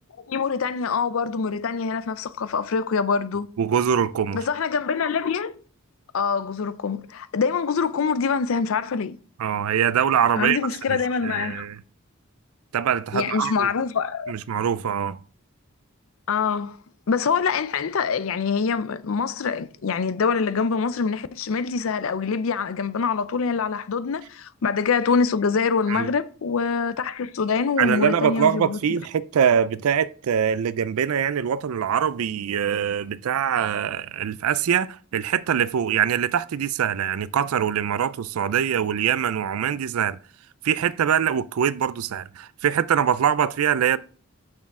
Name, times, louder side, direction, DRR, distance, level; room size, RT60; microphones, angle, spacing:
voice 1, 0.3-3.5 4.3-5.6 6.1-9.2 10.4-11.7 13.1-14.3 16.3-16.8 17.1-28.8, left 5 dB, 70° left, 0.5 m, -25 dB
voice 2, 3.6-4.4 9.4-10.6 10.9-11.8 12.7-13.7 14.3-15.2 25.9-26.1 27.8-40.2 40.6-44.0, right 8 dB, 85° right, 0.4 m, -23 dB
6.2 x 6.1 x 3.7 m
head